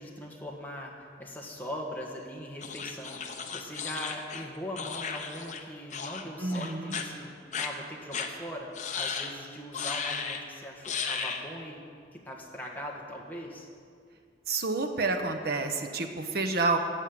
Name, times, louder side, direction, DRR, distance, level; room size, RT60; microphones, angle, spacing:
voice 1, 0.0-11.8 12.1-13.7, equal, 10° left, -2 dB, 1.6 m, -41 dB
sound 1, 2.6-5.6 5.9-6.2 6.5-7.0 7.5-7.7 8.1-8.3 8.7-9.3 9.7-10.4 10.8-11.4, left 6 dB, 40° left, 0.9 m, -35 dB
voice 2, 6.4-7.0 14.5-16.8, right 3 dB, 60° right, 5 dB, 1.0 m, -29 dB
14.5 x 5.6 x 9.2 m, 2.2 s
head